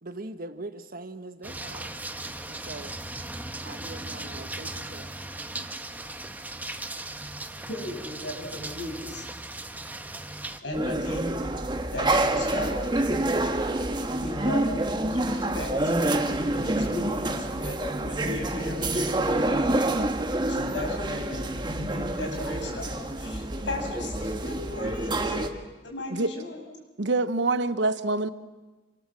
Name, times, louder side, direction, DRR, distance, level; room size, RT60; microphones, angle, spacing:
voice 1, 0.0-1.9 2.5-2.9 3.6-5.2 13.3-13.8 16.0-16.2, right 2 dB, 55° right, 9 dB, 1.4 m, -42 dB
sound 1, 1.4-10.6, right 2 dB, 10° right, 1.1 m, -38 dB
voice 2, 7.7-9.3 10.6-11.3 11.9-12.8 14.2-16.0 16.5-19.1 20.5-25.5 25.8-26.6, left 2 dB, 90° left, 2 dB, 6.7 m, -36 dB
sound 2, 10.7-25.5, right 1 dB, 25° right, 1.5 m, -27 dB
voice 3, 27.0-28.3, right 2 dB, 80° right, 13 dB, 1.0 m, -25 dB
27.5 x 24.5 x 7.6 m, 1.2 s
head